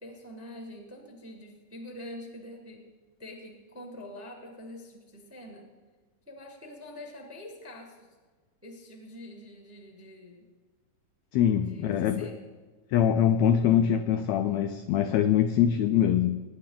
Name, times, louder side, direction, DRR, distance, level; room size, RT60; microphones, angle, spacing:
voice 1, 0.0-2.9 3.2-5.7 6.3-8.1 8.6-10.5 11.7-12.5, left 1 dB, 10° right, 1 dB, 0.9 m, -45 dB
voice 2, 11.3-12.3 12.9-16.4, left 9 dB, 80° left, 8 dB, 1.6 m, -23 dB
20.0 x 9.9 x 3.9 m, 1.3 s
omnidirectional pair, 3.7 m